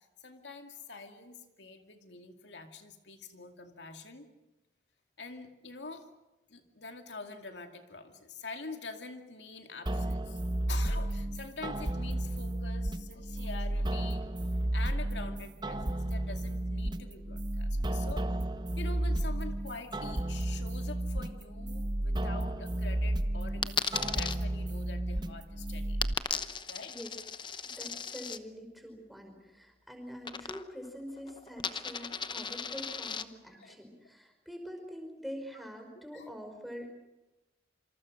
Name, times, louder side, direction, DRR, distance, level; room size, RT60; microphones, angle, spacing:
voice 1, 0.2-4.3 5.2-6.1 6.5-10.4 10.7-14.3 14.7-18.3 18.8-26.0 26.3-26.9 33.5-33.8 36.1-36.3, left 3 dB, 80° left, 5 dB, 2.4 m, -45 dB
sound 1, 9.9-26.1, right 1 dB, 25° right, 0.9 m, -33 dB
Coin (dropping), 23.6-24.4 26.0-28.4 30.2-30.9 31.2-33.2, left 6 dB, 25° left, 0.9 m, -36 dB
voice 2, 27.6-36.9, equal, ahead, 3 dB, 5.1 m, -45 dB
27.0 x 26.0 x 6.5 m, 1.0 s
head